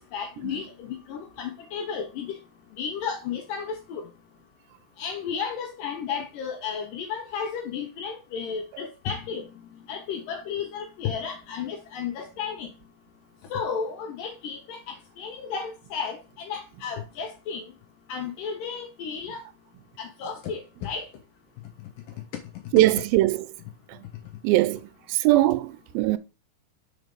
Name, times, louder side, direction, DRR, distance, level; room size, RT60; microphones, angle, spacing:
voice 1, 0.0-2.4 2.8-4.1 5.0-12.7 13.5-17.7 18.1-19.4 20.0-21.1, left 6 dB, 75° left, 2.3 m, -33 dB
voice 2, 22.7-23.4 24.4-24.8 25.1-26.2, right 16 dB, 80° right, 2.3 m, -20 dB
6.5 x 4.6 x 5.2 m
omnidirectional pair, 4.3 m